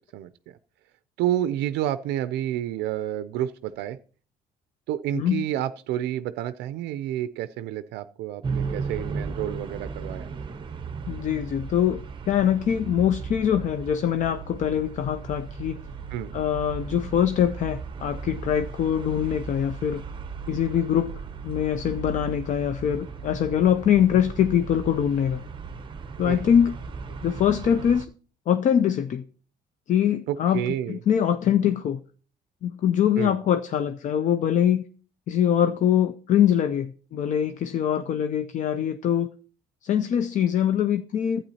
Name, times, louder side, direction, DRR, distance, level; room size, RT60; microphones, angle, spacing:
voice 1, 0.1-0.6 1.2-4.0 4.9-10.3 16.1-16.3 26.2-26.4 30.3-31.0 33.2-33.4, right 12 dB, 85° right, 0.4 m, -29 dB
voice 2, 5.1-5.4 11.1-12.0 12.3-15.8 16.3-20.0 20.5-25.4 26.2-26.7 27.2-28.1 28.5-29.2 29.9-32.0 32.6-34.8 35.3-39.3 39.8-41.4, left 9 dB, 50° left, 0.5 m, -23 dB
sound 1, 8.4-28.1, right 5 dB, 30° right, 0.7 m, -36 dB
12.0 x 8.7 x 2.8 m
cardioid pair, 110°, 17 cm